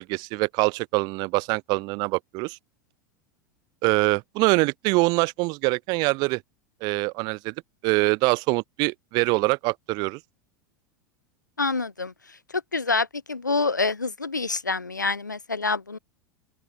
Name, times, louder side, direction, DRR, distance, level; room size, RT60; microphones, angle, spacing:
voice 1, 0.0-2.6 3.8-6.4 6.8-7.5 7.8-10.2, right 26 dB, 45° right, 6.8 m, -24 dB
voice 2, 11.6-12.1 12.7-16.0, left 3 dB, 80° left, 5.5 m, -26 dB
open air
figure-of-eight pair, 80°, 10 cm